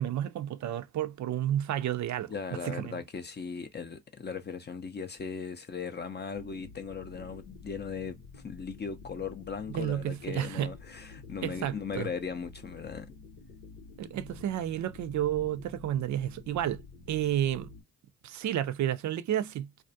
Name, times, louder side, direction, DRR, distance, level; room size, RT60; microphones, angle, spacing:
voice 1, 0.0-2.3 2.6-3.0 9.7-10.7 11.4-12.1 14.0-16.8 17.1-17.7 18.2-19.7, right 11 dB, 45° right, 0.4 m, -31 dB
voice 2, 2.3-13.1, left 6 dB, 25° left, 0.5 m, -38 dB
sound 1, 6.3-17.8, left 4 dB, 80° left, 0.9 m, -50 dB
2.3 x 2.1 x 2.6 m
hypercardioid pair, 45°, 41 cm